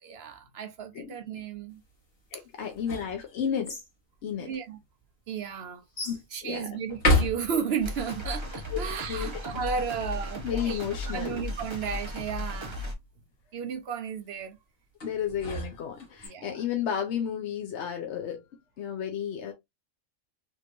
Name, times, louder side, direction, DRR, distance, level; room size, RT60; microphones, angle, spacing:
voice 1, 0.0-1.8 2.3-2.4 4.4-4.8 5.3-5.8 6.3-12.9 13.5-14.6 16.2-16.6, right 6 dB, 65° right, 0.7 m, -34 dB
voice 2, 2.3-3.8 4.2-4.5 6.1-6.2 6.4-6.8 8.7-9.3 10.4-11.4 15.0-18.4 18.8-19.5, left 8 dB, 60° left, 0.9 m, -32 dB
sound 1, 2.6-3.9 4.7-4.8 6.0-6.2 6.9-7.9 15.0-16.3, left 1 dB, 45° left, 1.5 m, -29 dB
sound 2, 7.8-12.9, left 1 dB, 25° right, 0.8 m, -36 dB
3.4 x 3.0 x 2.4 m
omnidirectional pair, 1.4 m